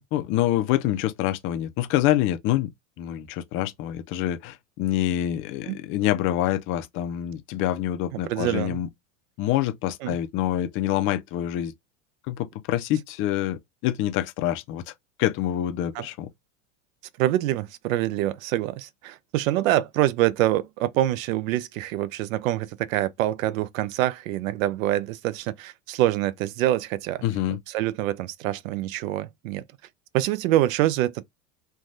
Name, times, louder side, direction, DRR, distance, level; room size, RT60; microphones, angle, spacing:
voice 1, 0.1-2.7 3.0-8.9 9.4-11.7 12.3-14.9 15.2-16.3 27.2-27.6, left 13 dB, 30° left, 0.4 m, -26 dB
voice 2, 8.3-8.8 10.0-10.2 16.0-16.1 17.2-27.2 27.7-29.6 30.1-31.2, right 14 dB, 75° right, 0.5 m, -25 dB
3.2 x 2.3 x 2.5 m
supercardioid pair, 130°, 40 cm